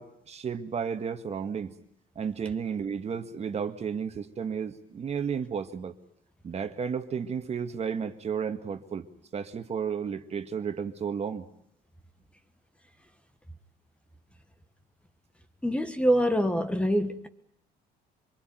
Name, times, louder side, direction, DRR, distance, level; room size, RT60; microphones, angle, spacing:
voice 1, 0.0-1.7 2.2-5.9 6.4-9.1 9.3-11.5, right 6 dB, 40° right, 1.9 m, -33 dB
voice 2, 15.6-17.3, equal, 5° left, 1.6 m, -25 dB
25.5 x 23.5 x 9.3 m
cardioid pair, 110°, 17 cm